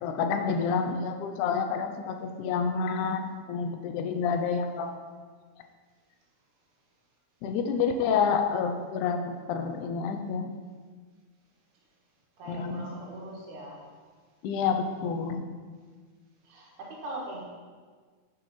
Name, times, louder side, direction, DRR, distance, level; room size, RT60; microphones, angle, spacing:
voice 1, 0.0-5.1 7.4-10.5 12.5-12.9 14.4-15.5, left 6 dB, 80° left, 6 dB, 2.1 m, -29 dB
voice 2, 8.0-8.6 12.4-13.8 16.4-17.4, right 1 dB, 80° right, -3 dB, 3.1 m, -41 dB
8.1 x 7.0 x 4.2 m, 1.5 s
omnidirectional pair, 3.6 m